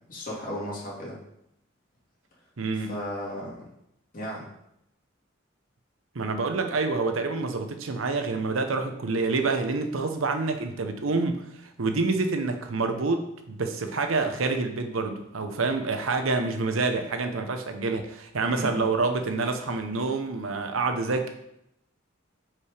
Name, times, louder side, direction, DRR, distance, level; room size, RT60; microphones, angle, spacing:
voice 1, 0.1-1.2 2.8-3.7 4.1-4.5 18.5-18.9, equal, 40° left, -6 dB, 2.5 m, -35 dB
voice 2, 2.6-2.9 6.1-21.3, right 3 dB, 85° right, 6 dB, 0.8 m, -27 dB
5.8 x 4.8 x 5.0 m, 0.80 s
head